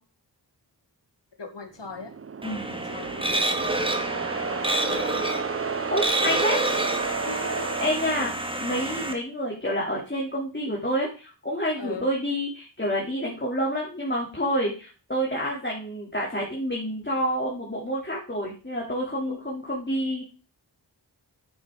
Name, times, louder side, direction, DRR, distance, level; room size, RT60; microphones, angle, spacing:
voice 1, 1.4-2.1 2.5-5.2 7.2-7.8 8.1-8.2 11.8-12.1 19.3-19.4, left 4 dB, 80° left, 5 dB, 1.8 m, -40 dB
sound 1, 1.8-8.9, right 5 dB, 35° right, 0.5 m, -32 dB
sound 2, 2.4-9.1, right 1 dB, 10° right, 1.7 m, -28 dB
voice 2, 5.9-6.6 7.8-8.3 8.6-20.2, equal, 25° left, -4 dB, 3.3 m, -28 dB
9.6 x 8.8 x 3.9 m, 0.35 s
wide cardioid pair, 50°, 42 cm